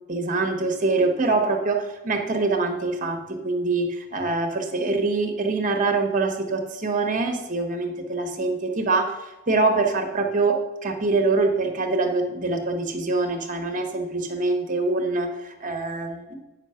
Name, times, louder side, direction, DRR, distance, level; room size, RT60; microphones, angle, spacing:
voice 1, 0.1-16.4, right 3 dB, 35° right, 5 dB, 1.1 m, -24 dB
9.0 x 5.7 x 5.7 m, 1.1 s
head